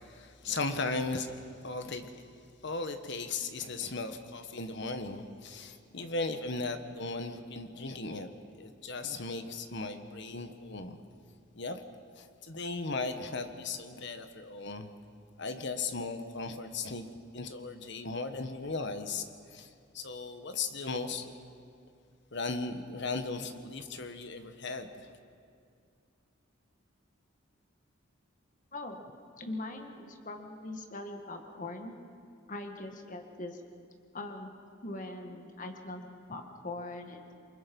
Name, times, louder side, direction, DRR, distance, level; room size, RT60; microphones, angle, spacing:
voice 1, 0.1-1.3 1.6-2.2 2.6-8.3 8.6-11.0 11.5-11.8 12.2-14.9 15.4-17.1 17.3-19.7 19.9-21.3 22.3-25.1, left 3 dB, 60° left, 8 dB, 1.4 m, -37 dB
voice 2, 28.7-29.1 29.4-32.0 32.5-33.6 34.1-34.5 34.8-37.3, left 2 dB, 40° left, 4 dB, 1.9 m, -41 dB
28.0 x 23.5 x 5.4 m, 2.3 s
head